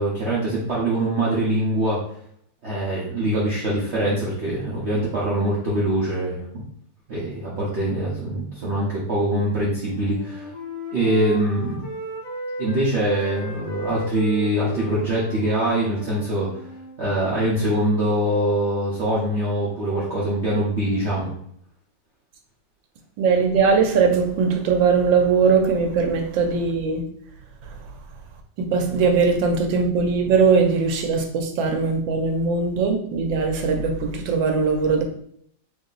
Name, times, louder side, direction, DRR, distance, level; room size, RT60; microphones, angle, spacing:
voice 1, 0.0-2.0 2.6-6.4 7.1-10.5 10.9-11.9 12.6-16.5 17.0-21.3, right 1 dB, 45° right, -6 dB, 0.9 m, -23 dB
Wind instrument woodwind instrument, 9.8-12.9 13.2-17.0, equal, 75° left, 0.4 m, -35 dB
voice 2, 23.2-27.0 27.6-27.9 28.6-35.0, right 5 dB, 80° right, 4 dB, 1.4 m, -20 dB
3.3 x 2.8 x 3.9 m, 0.66 s
omnidirectional pair, 2.1 m